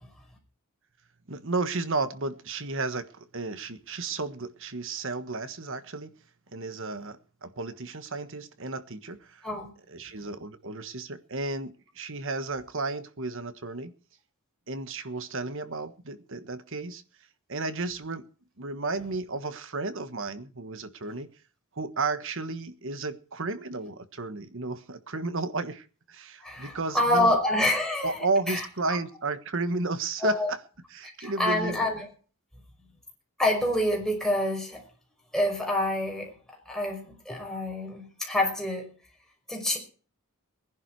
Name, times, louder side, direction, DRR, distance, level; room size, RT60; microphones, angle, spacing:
voice 1, 1.3-6.1 6.5-9.5 9.9-13.9 14.7-17.0 17.5-18.3 18.6-21.3 21.7-27.3 28.0-30.6 30.9-31.8, right 3 dB, 60° right, 1.4 m, -33 dB
voice 2, 26.4-28.2 28.5-28.7 30.2-30.5 31.2-32.0 33.4-34.8 35.3-38.9 39.5-39.8, left 1 dB, ahead, 5.5 m, -27 dB
20.0 x 11.0 x 4.8 m
head